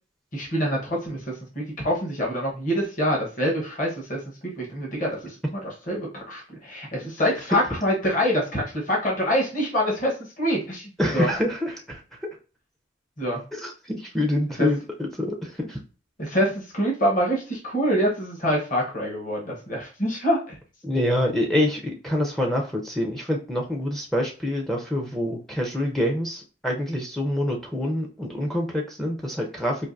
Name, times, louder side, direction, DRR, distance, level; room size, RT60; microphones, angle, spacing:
voice 1, 0.3-11.3 13.2-13.4 14.6-14.7 16.2-20.6, equal, 40° left, -2 dB, 1.0 m, -26 dB
voice 2, 11.0-12.2 13.5-15.8 20.8-29.9, left 1 dB, ahead, 0 dB, 0.5 m, -26 dB
4.5 x 2.6 x 2.5 m, 0.35 s
head